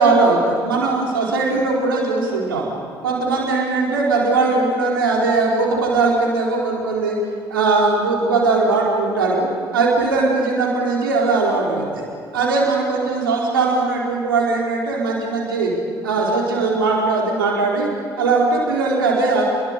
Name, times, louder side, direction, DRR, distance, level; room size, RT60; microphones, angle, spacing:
voice 1, 0.0-2.6 3.0-7.2 7.5-9.5 9.7-12.0 12.3-15.7 16.0-17.9 18.2-19.4, right 3 dB, 80° right, -2 dB, 4.3 m, -19 dB
30.0 x 22.0 x 6.8 m, 2.2 s
figure-of-eight pair, 45°, 11 cm